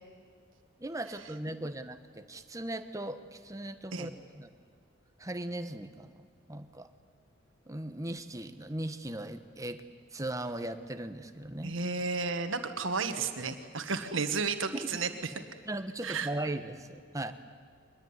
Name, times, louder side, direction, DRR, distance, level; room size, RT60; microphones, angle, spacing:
voice 1, 0.8-4.5 5.2-6.2 6.5-6.9 7.7-9.8 10.1-11.8 15.6-17.3, right 1 dB, 15° right, 9 dB, 1.2 m, -38 dB
voice 2, 11.6-15.3 16.0-16.3, right 4 dB, 80° right, 7 dB, 1.5 m, -32 dB
23.5 x 21.0 x 9.7 m, 2.1 s
head